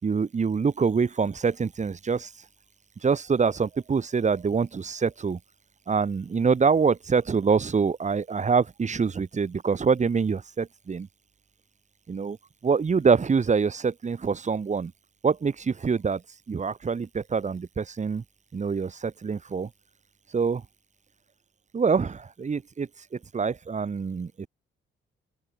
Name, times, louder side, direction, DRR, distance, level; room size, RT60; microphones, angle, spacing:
voice 1, 0.0-2.3 3.0-5.4 5.9-11.1 12.1-12.4 12.6-14.9 15.2-16.2 16.5-18.2 18.5-19.7 20.3-20.6 21.7-22.9 23.3-24.5, right 5 dB, 35° right, 4.7 m, -25 dB
open air
cardioid pair, 90°, 20 cm